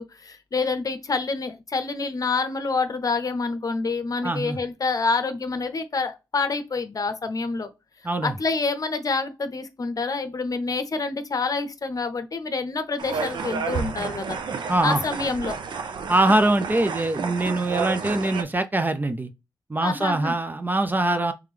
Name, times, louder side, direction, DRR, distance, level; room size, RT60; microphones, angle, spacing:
voice 1, 0.0-7.7 8.2-14.4 14.8-15.6 19.8-20.3, left 4 dB, 50° left, 0.7 m, -27 dB
voice 2, 4.2-4.6 8.0-8.3 14.7-15.0 16.1-19.3 19.7-21.3, right 2 dB, 25° right, 0.5 m, -23 dB
sound 1, 13.0-18.4, right 5 dB, 75° right, 0.5 m, -31 dB
3.5 x 3.3 x 3.3 m
supercardioid pair, 45°, 8 cm